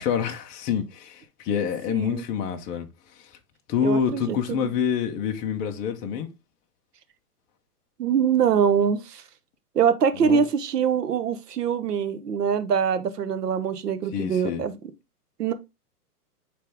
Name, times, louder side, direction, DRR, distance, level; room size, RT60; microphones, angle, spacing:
voice 1, 0.0-2.9 3.7-6.3 10.2-10.4 14.1-14.6, left 7 dB, 20° left, 0.7 m, -27 dB
voice 2, 1.9-2.2 3.8-4.7 8.0-9.2 9.7-14.7 15.4-15.5, right 7 dB, 80° right, 1.3 m, -24 dB
9.5 x 3.4 x 3.4 m
hypercardioid pair, 140°, 47 cm